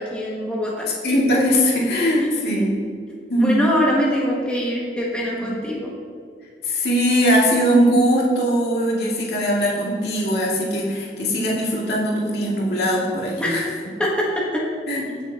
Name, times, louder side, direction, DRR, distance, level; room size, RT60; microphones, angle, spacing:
voice 1, 0.0-0.9 2.5-2.6 3.4-5.9 13.4-13.7 14.0-14.6, equal, 5° left, -5 dB, 1.2 m, -23 dB
voice 2, 1.0-2.7 3.3-3.6 5.4-5.5 6.6-13.6 14.9-15.1, equal, 65° left, -4 dB, 2.3 m, -20 dB
18.0 x 7.1 x 2.9 m, 2.2 s
head